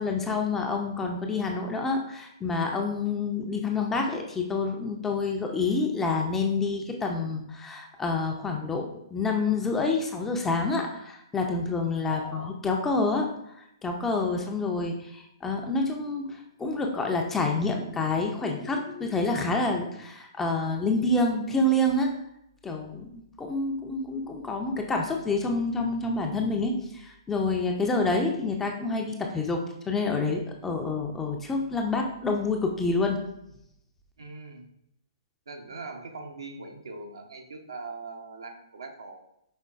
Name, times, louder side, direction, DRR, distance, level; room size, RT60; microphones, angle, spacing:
voice 1, 0.0-13.3 13.8-22.1 22.6-33.2, left 3 dB, 10° left, 2 dB, 0.5 m, -28 dB
voice 2, 12.1-12.6 34.2-34.6 35.5-39.2, right 3 dB, 65° right, 3 dB, 0.7 m, -41 dB
5.2 x 3.7 x 2.4 m, 0.78 s
figure-of-eight pair, 120°, 3 cm